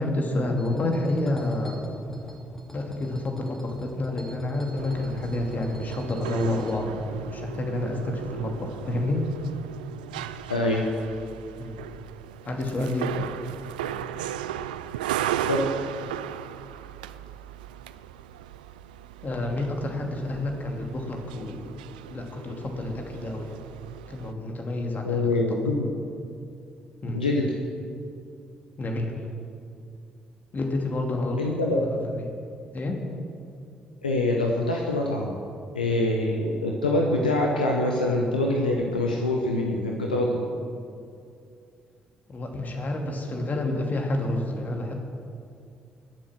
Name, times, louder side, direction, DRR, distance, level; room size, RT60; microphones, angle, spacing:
voice 1, 0.0-9.2 11.6-11.8 12.4-13.3 19.2-21.8 22.1-23.6 24.1-25.3 27.0-27.2 28.8-29.1 30.5-32.2 32.7-33.0 42.3-45.0, left 1 dB, 40° left, 2 dB, 2.5 m, -29 dB
sound 1, 0.6-6.7, equal, 10° left, 3.1 m, -44 dB
sound 2, 4.8-24.3, right 11 dB, 75° right, 0.3 m, -36 dB
voice 2, 10.5-10.8 15.5-15.7 25.0-25.9 27.1-27.5 31.4-31.8 34.0-35.3 35.7-40.5, left 2 dB, 85° left, 0 dB, 0.9 m, -24 dB
20.5 x 7.6 x 6.2 m, 2.4 s
figure-of-eight pair, 45°, 5 cm